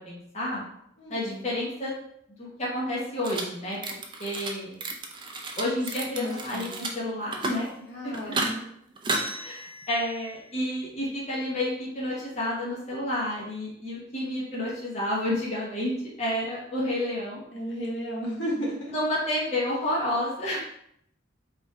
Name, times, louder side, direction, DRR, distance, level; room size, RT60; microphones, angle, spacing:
voice 1, 0.1-0.7 1.1-1.9 2.4-3.8 4.2-4.8 5.6-7.7 8.0-8.3 9.3-17.4 18.9-20.6, left 1 dB, 35° left, -6 dB, 1.0 m, -30 dB
voice 2, 1.0-1.4 6.1-6.7 7.9-8.6 17.5-18.9, equal, 65° left, -4 dB, 1.1 m, -33 dB
sound 1, 3.2-3.4 3.7-4.5 4.8-6.9 7.2-7.7 8.1-8.5 9.0-10.4, right 2 dB, 25° right, 0.4 m, -33 dB
3.3 x 2.6 x 4.2 m, 0.72 s
head